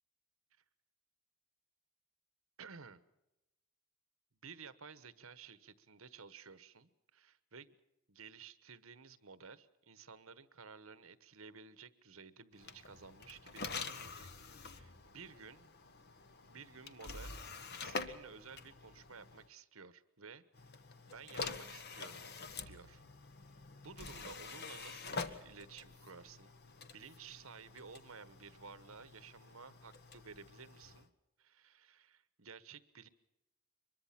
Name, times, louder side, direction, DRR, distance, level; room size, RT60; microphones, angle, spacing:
voice 1, 2.6-3.0 4.4-7.7 8.1-15.7 16.5-20.4 21.0-22.3 22.7-23.0 23.8-26.5 26.9-31.1 31.4-33.1, right 5 dB, 70° right, 14 dB, 1.2 m, -54 dB
sound 1, 12.6-19.5 20.5-31.1, left 4 dB, 50° left, 1.3 m, -47 dB
24.5 x 22.0 x 5.9 m, 0.94 s
head